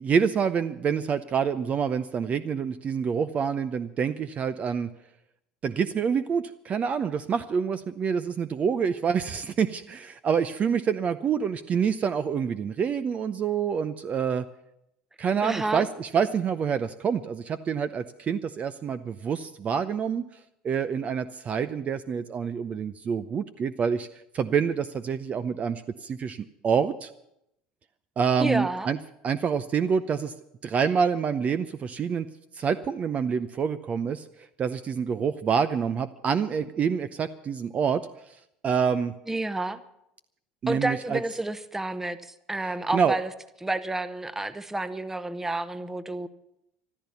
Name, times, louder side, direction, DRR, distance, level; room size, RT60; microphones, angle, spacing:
voice 1, 0.0-4.9 5.6-14.4 15.2-20.2 20.6-24.1 24.3-27.1 28.2-29.0 29.2-30.3 30.6-32.3 32.5-34.3 34.6-38.0 38.6-39.1 40.6-41.2 42.9-43.2, right 6 dB, 40° right, 13 dB, 0.7 m, -27 dB
voice 2, 15.4-15.9 28.4-28.9 39.3-39.8 40.7-43.3 43.6-46.3, right 2 dB, 10° right, 14 dB, 1.0 m, -30 dB
14.5 x 12.0 x 7.0 m, 0.80 s
hypercardioid pair, 80°, 4 cm